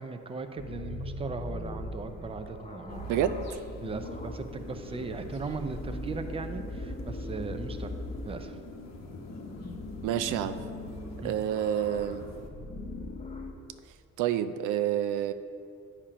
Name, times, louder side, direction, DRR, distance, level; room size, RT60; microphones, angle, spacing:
voice 1, 0.0-3.1 3.8-7.9 8.2-8.6 11.2-11.3, right 4 dB, 20° right, 7 dB, 0.5 m, -38 dB
sound 1, 0.6-8.5 9.0-13.5, left 1 dB, 25° left, 0.8 m, -40 dB
sound 2, 2.9-12.5, left 3 dB, 60° left, 1.0 m, -47 dB
voice 2, 3.1-3.4 10.0-10.6 11.2-12.3 14.2-15.3, right 10 dB, 85° right, 10 dB, 0.5 m, -28 dB
8.8 x 4.4 x 5.0 m, 2.3 s
cardioid pair, 90°, 30 cm